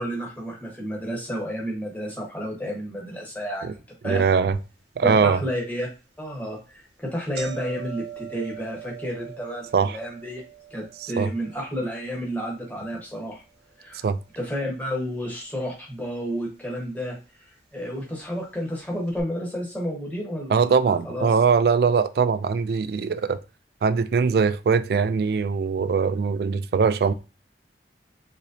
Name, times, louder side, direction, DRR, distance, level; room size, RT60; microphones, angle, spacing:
voice 1, 0.0-4.2 5.0-5.9 6.2-10.4 10.7-13.4 13.8-14.0 14.3-21.3, equal, 10° left, 1.1 m, -31 dB
voice 2, 4.0-4.6 5.0-5.4 9.7-10.0 11.0-11.3 14.0-14.2 20.5-23.4 23.8-27.1, right 5 dB, 60° right, 0.3 m, -21 dB
sound 1, 4.5-4.6 5.2-5.3 6.1-6.3 6.6-6.7 7.0-15.2 15.4-16.2 17.0-17.1 18.0-18.1 18.4-18.5 19.1-19.2, right 9 dB, 75° right, 0.9 m, -43 dB
3.8 x 3.0 x 2.6 m
head